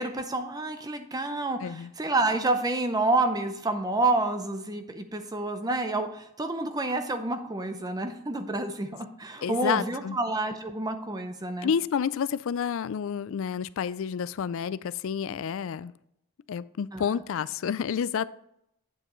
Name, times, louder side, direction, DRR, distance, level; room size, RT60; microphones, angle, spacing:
voice 1, 0.0-11.7 16.9-17.0, right 2 dB, 15° right, 0.6 m, -29 dB
voice 2, 1.6-1.9 9.4-10.2 11.6-15.9 16.5-18.2, left 7 dB, 60° left, 0.3 m, -29 dB
8.7 x 7.6 x 3.1 m
head